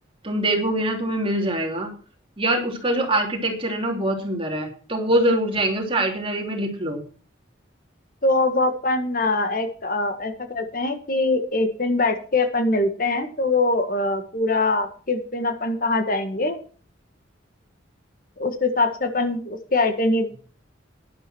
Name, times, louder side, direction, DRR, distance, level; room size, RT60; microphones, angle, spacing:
voice 1, 0.2-1.9 2.4-7.0, right 1 dB, 25° right, 2 dB, 3.2 m, -24 dB
voice 2, 8.2-16.6 18.4-20.5, left 2 dB, 45° left, 8 dB, 1.6 m, -23 dB
11.5 x 11.5 x 4.5 m, 0.39 s
head